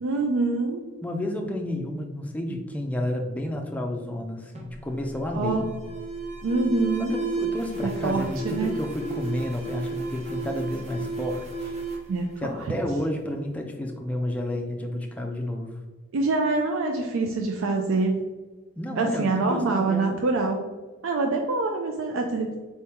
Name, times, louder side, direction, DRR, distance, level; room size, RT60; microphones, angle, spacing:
voice 1, 0.0-0.8 5.3-5.6 6.4-7.1 7.8-8.7 12.1-12.6 16.1-18.3 19.0-20.6 21.0-22.6, right 3 dB, 85° right, 3 dB, 0.4 m, -25 dB
voice 2, 1.0-5.7 7.0-11.7 12.4-15.7 18.8-20.2, left 1 dB, 5° left, 1 dB, 0.4 m, -31 dB
Alarm, 4.5-13.1, right 3 dB, 35° right, 0.7 m, -33 dB
4.2 x 3.5 x 2.9 m, 1.3 s
head